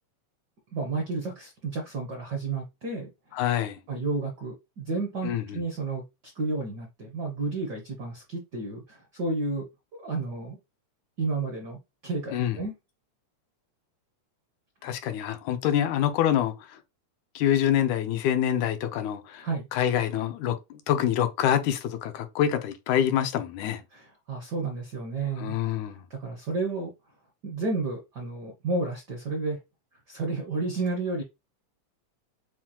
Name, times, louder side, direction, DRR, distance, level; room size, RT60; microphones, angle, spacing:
voice 1, 0.7-3.1 3.9-6.0 6.3-9.7 10.0-10.6 11.2-12.7 19.4-19.7 23.9-25.5 26.1-26.9 27.4-29.6 30.1-31.2, right 3 dB, 75° right, 0.9 m, -31 dB
voice 2, 3.3-3.8 5.2-5.6 12.3-12.6 14.8-16.8 17.4-23.8 25.4-26.0, left 10 dB, 90° left, 2.1 m, -26 dB
7.5 x 2.9 x 2.2 m
omnidirectional pair, 3.4 m